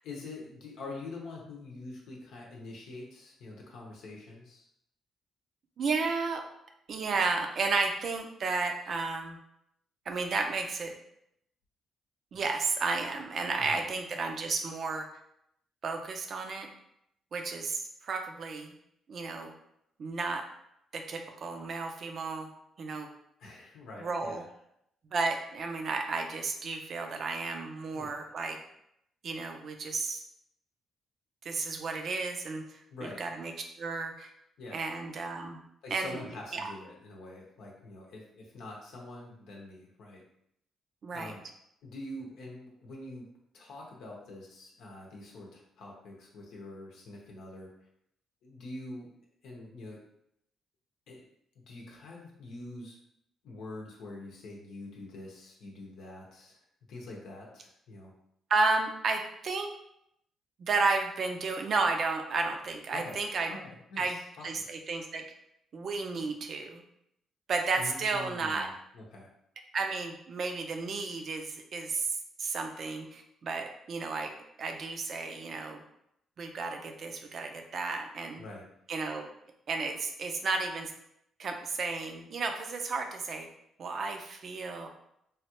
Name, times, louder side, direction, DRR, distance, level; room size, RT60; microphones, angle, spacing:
voice 1, 0.0-4.7 13.6-13.8 23.4-24.5 27.9-28.2 32.9-33.2 34.6-34.8 35.8-40.2 41.1-41.4 41.8-43.3 43.5-47.7 48.4-49.1 49.4-50.0 51.1-51.3 51.7-53.0 53.4-56.6 56.9-58.1 62.9-63.2 63.5-64.6 67.8-69.3 78.4-78.7, left 2 dB, 80° left, -2 dB, 0.7 m, -45 dB
voice 2, 5.8-6.4 6.9-9.4 10.1-10.9 12.3-15.1 15.8-16.7 17.3-18.7 19.1-19.5 20.0-20.4 20.9-22.5 22.8-23.1 24.0-24.4 25.1-28.6 29.2-30.2 31.4-33.5 33.8-34.3 34.7-35.6 35.9-36.2 36.5-36.7 41.0-41.3 58.5-59.7 60.6-63.5 64.0-64.2 64.4-65.2 65.7-66.8 67.5-68.7 69.7-74.3 74.6-75.8 76.4-78.4 78.9-79.3 79.7-80.9 81.4-83.5 83.8-84.9, right 4 dB, 55° right, 4 dB, 0.5 m, -32 dB
3.2 x 2.3 x 2.9 m, 0.76 s
cardioid pair, 90°, 0 cm